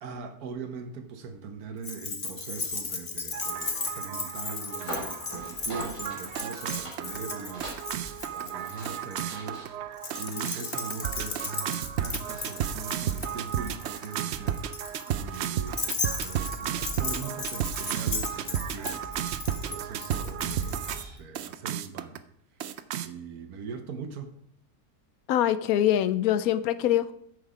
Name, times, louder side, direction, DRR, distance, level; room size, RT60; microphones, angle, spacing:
voice 1, 0.0-9.9 10.2-22.2 23.0-24.3, right 5 dB, 70° right, 1.3 m, -41 dB
Keys jangling, 1.8-9.2 10.0-21.0, left 4 dB, 35° left, 0.7 m, -36 dB
sound 1, 3.3-21.0 21.4-22.2 22.6-23.1, right 9 dB, 85° right, 0.6 m, -33 dB
sound 2, 4.7-21.2, right 1 dB, 15° left, 4.2 m, -46 dB
voice 2, 25.3-27.1, left 11 dB, 70° left, 0.9 m, -24 dB
9.2 x 6.4 x 4.8 m
omnidirectional pair, 1.7 m